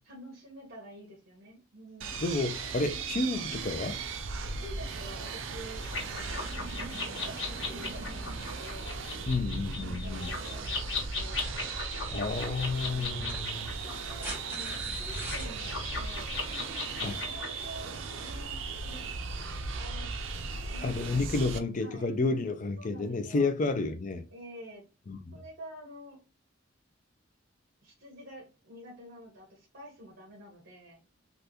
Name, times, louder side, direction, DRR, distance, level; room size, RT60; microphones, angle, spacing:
voice 1, 0.0-2.3 4.6-6.4 6.7-9.0 9.8-11.5 12.8-13.3 13.6-16.4 17.0-17.9 18.2-19.1 19.8-20.1 20.7-21.4 21.8-22.1 22.8-23.5 24.3-24.8 25.3-26.2 27.8-31.0, right 1 dB, 55° right, 1.2 m, -48 dB
sound 1, 2.0-21.6, right 4 dB, 70° right, 0.5 m, -37 dB
voice 2, 2.2-4.0 9.3-10.3 12.1-13.7 17.0-17.2 20.8-24.2 25.1-25.3, left 3 dB, 40° left, 0.4 m, -31 dB
sound 2, 5.8-17.6, left 4 dB, 75° left, 1.3 m, -38 dB
sound 3, 13.1-15.5 17.0-17.1, right 1 dB, 10° right, 1.3 m, -42 dB
3.4 x 2.5 x 2.8 m
head